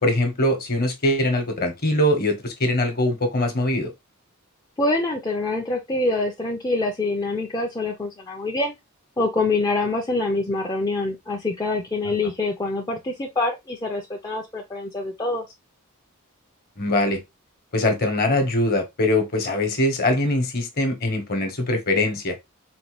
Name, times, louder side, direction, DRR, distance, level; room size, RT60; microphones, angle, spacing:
voice 1, 0.0-3.9 16.8-17.2 17.7-22.3, left 1 dB, 45° left, 0.9 m, -22 dB
voice 2, 4.8-8.8 9.2-15.4, left 2 dB, 15° left, 0.4 m, -25 dB
4.0 x 2.2 x 2.9 m
head